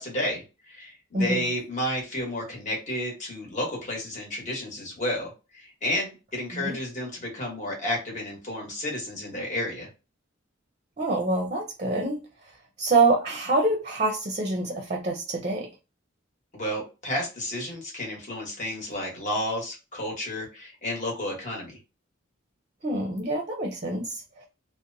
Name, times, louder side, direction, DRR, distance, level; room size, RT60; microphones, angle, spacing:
voice 1, 0.0-9.9 16.5-21.8, left 1 dB, 40° left, 1.1 m, -31 dB
voice 2, 1.1-1.5 6.5-6.8 11.0-12.2 12.8-15.7 22.8-24.5, right 3 dB, 35° right, 0.5 m, -26 dB
2.8 x 2.0 x 2.6 m
head